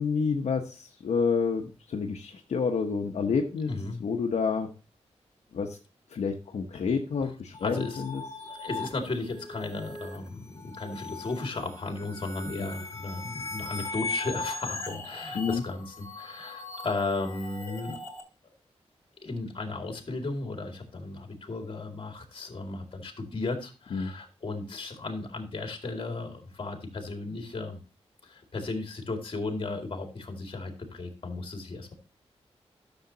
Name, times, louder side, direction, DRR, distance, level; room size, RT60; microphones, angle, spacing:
voice 1, 0.0-3.7 4.0-4.7 5.5-5.8 6.1-8.2 15.3-15.6 23.9-24.1, left 5 dB, 80° left, 3 dB, 0.9 m, -29 dB
voice 2, 3.6-4.0 7.2-7.3 7.6-8.0 8.4-18.0 19.2-27.8 28.2-31.9, left 3 dB, 50° left, 4 dB, 2.3 m, -35 dB
sound 1, 7.5-18.2, left 3 dB, 25° left, 3.0 m, -39 dB
11.5 x 7.0 x 2.8 m, 0.32 s
wide cardioid pair, 95°, 11 cm